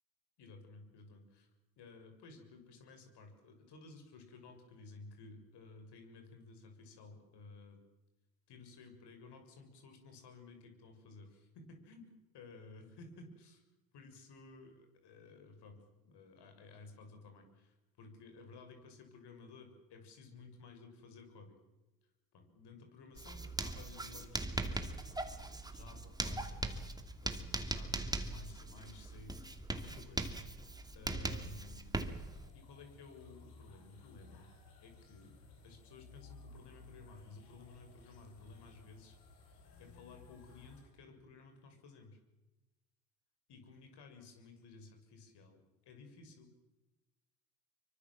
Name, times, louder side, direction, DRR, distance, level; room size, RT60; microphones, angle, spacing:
voice 1, 0.4-1.5 1.8-7.8 8.5-12.1 12.3-13.6 13.9-21.6 22.3-30.7 30.9-31.9 32.5-34.5 34.8-35.3 35.6-39.2 39.8-42.2 43.5-46.5, left 3 dB, 55° left, 5 dB, 6.8 m, -55 dB
Writing, 23.2-32.5, right 2 dB, 10° right, 2.7 m, -40 dB
sound 1, 32.0-40.8, left 3 dB, 85° left, 7.4 m, -58 dB
25.5 x 24.0 x 7.5 m, 1.1 s
hypercardioid pair, 75°, 49 cm